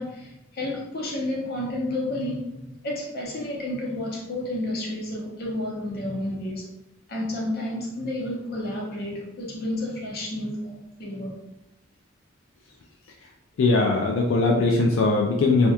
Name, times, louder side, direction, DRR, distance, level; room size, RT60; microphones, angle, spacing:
voice 1, 0.0-2.5 2.8-6.6 7.1-11.3, left 1 dB, 55° left, -3 dB, 0.7 m, -31 dB
voice 2, 13.6-15.7, left 3 dB, 80° left, 0 dB, 0.3 m, -20 dB
2.8 x 2.2 x 2.3 m, 0.88 s
head